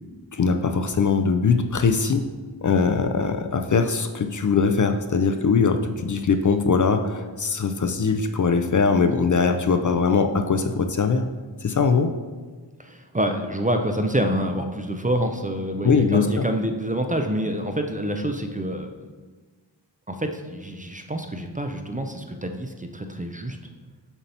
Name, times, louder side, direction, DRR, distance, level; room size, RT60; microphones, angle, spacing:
voice 1, 0.3-2.2 2.6-11.3 11.6-12.1 15.8-16.5, left 5 dB, 45° left, 7 dB, 0.4 m, -21 dB
voice 2, 12.8-18.9 20.1-23.6, right 1 dB, 20° right, 4 dB, 0.4 m, -27 dB
7.1 x 2.8 x 5.3 m, 1.4 s
wide cardioid pair, 75°, 46 cm